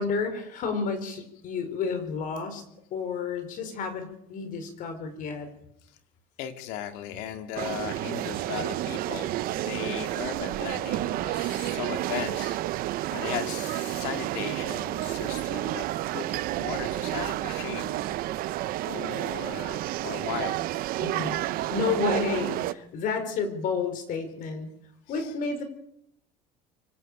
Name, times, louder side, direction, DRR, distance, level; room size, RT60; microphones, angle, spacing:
voice 1, 0.0-2.6 2.9-5.5 21.0-21.4 21.7-24.7 25.1-25.6, left 5 dB, 50° left, 8 dB, 4.9 m, -30 dB
voice 2, 6.4-12.6 13.1-15.9 16.1-18.0 18.9-20.6 25.1-25.3, left 10 dB, 75° left, 7 dB, 2.4 m, -37 dB
sound 1, 7.6-22.7, right 15 dB, 55° right, 0.8 m, -30 dB
25.0 x 13.0 x 8.7 m, 0.74 s
cardioid pair, 135°, 18 cm